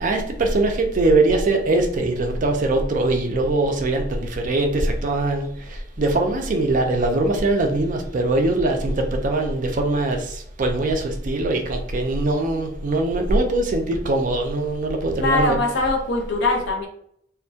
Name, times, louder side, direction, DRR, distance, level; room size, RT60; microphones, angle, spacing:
voice 1, 0.0-15.6, right 2 dB, 45° right, 4 dB, 0.4 m, -22 dB
voice 2, 15.2-16.9, left 2 dB, 65° left, 3 dB, 0.5 m, -22 dB
2.2 x 2.1 x 2.7 m, 0.70 s
head